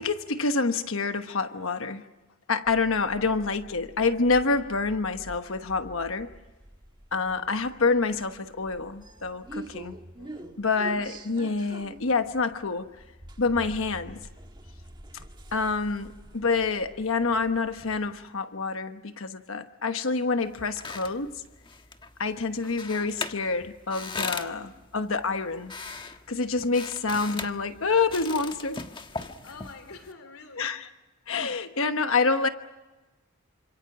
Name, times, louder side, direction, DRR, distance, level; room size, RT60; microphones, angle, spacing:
voice 1, 0.0-2.0 2.5-6.3 7.1-10.0 10.6-12.9 13.4-14.2 15.5-21.3 22.2-25.7 26.3-28.8 30.6-30.9 31.3-32.5, left 4 dB, 65° left, 8 dB, 1.2 m, -27 dB
sound 1, 2.7-18.3, right 1 dB, 20° right, 1.5 m, -47 dB
voice 2, 7.1-7.5 10.2-10.7 24.6-24.7 29.4-30.7, left 3 dB, 85° left, 7 dB, 2.8 m, -48 dB
sound 2, 20.4-30.1, left 4 dB, 25° left, 1.4 m, -39 dB
28.5 x 26.5 x 6.1 m, 1.1 s
head